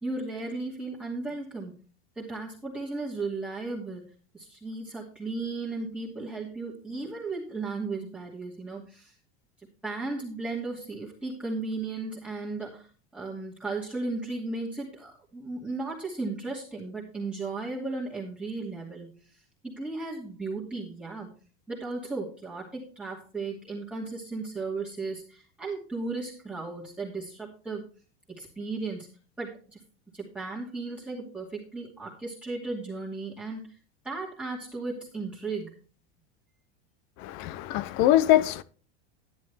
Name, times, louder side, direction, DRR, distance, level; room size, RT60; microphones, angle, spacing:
voice 1, 0.0-1.7 2.2-4.0 4.3-9.1 9.8-12.9 13.1-19.2 19.6-21.3 21.7-27.8 28.3-29.1 29.4-29.8 30.1-33.6 34.0-35.8, right 3 dB, 5° right, 2.5 m, -35 dB
voice 2, 37.2-38.6, left 13 dB, 45° left, 0.7 m, -23 dB
11.0 x 10.0 x 3.4 m
supercardioid pair, 150°, 29 cm